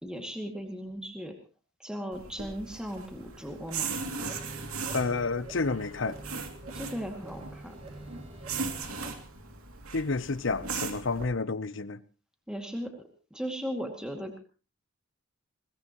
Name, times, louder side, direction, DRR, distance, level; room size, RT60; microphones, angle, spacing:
voice 1, 0.0-1.3 1.8-4.0 6.7-7.8 12.5-12.9 13.3-14.3, equal, 5° right, 2.3 m, -37 dB
sound 1, 2.1-11.3, right 4 dB, 90° right, 2.7 m, -38 dB
sound 2, 4.1-9.2, right 2 dB, 30° right, 3.2 m, -46 dB
voice 2, 4.9-6.2 9.9-12.0, left 3 dB, 60° left, 0.8 m, -30 dB
22.0 x 20.0 x 3.1 m
head